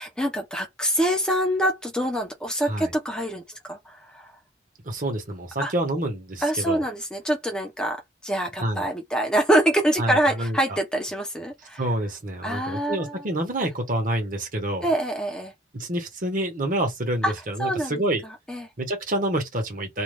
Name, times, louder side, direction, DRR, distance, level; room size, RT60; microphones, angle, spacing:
voice 1, 0.0-4.3 5.6-5.7 6.4-11.8 12.4-13.2 14.8-15.5 17.2-17.3 17.6-18.0 18.5-18.7, right 1 dB, 5° left, 0.6 m, -25 dB
voice 2, 4.8-6.8 8.6-8.8 10.0-10.6 11.8-14.9 15.7-18.2 18.8-20.0, right 1 dB, 50° right, 1.1 m, -27 dB
2.6 x 2.3 x 3.2 m
head